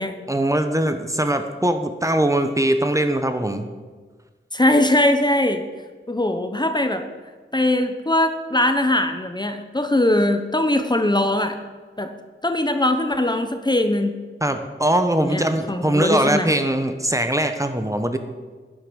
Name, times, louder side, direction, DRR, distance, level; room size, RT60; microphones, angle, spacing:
voice 1, 0.3-3.7 14.4-18.2, right 1 dB, 15° right, 7 dB, 1.1 m, -21 dB
voice 2, 4.5-5.6 6.1-7.0 7.5-11.5 12.0-12.1 12.4-14.2 15.2-16.6, left 1 dB, 20° left, 7 dB, 1.0 m, -21 dB
11.0 x 10.5 x 6.4 m, 1.4 s
wide cardioid pair, 85°, 20 cm